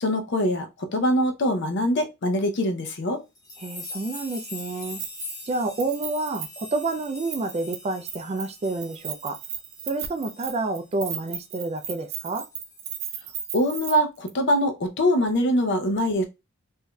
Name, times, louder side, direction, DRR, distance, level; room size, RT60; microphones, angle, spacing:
voice 1, 0.0-3.2 13.5-16.2, equal, 60° left, 0.6 m, -23 dB
sound 1, 3.3-11.2 11.5-11.7 12.5-13.1, left 2 dB, 15° left, 0.9 m, -42 dB
voice 2, 3.6-5.0 5.4-9.4 9.9-12.5, right 2 dB, 30° right, 0.4 m, -29 dB
Keys jangling, 4.9-5.5 5.8-7.8 8.1-8.5 8.8-13.9 14.3-14.4, right 9 dB, 75° right, 0.6 m, -35 dB
3.6 x 2.6 x 2.2 m
head